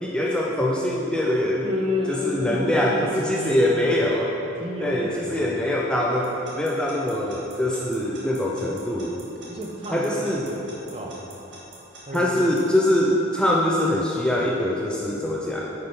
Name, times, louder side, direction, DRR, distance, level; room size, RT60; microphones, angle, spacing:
voice 1, 0.0-1.7 2.1-4.4 4.8-9.2 9.9-10.4 12.1-15.7, left 1 dB, 5° left, -3 dB, 0.5 m, -23 dB
voice 2, 1.6-3.7 4.6-5.6 9.5-11.4 12.1-12.5, left 1 dB, 25° right, 0 dB, 0.9 m, -30 dB
Alarm / Clock, 6.2-12.6, right 3 dB, 55° right, 2.0 m, -45 dB
10.0 x 5.5 x 5.5 m, 3.0 s
head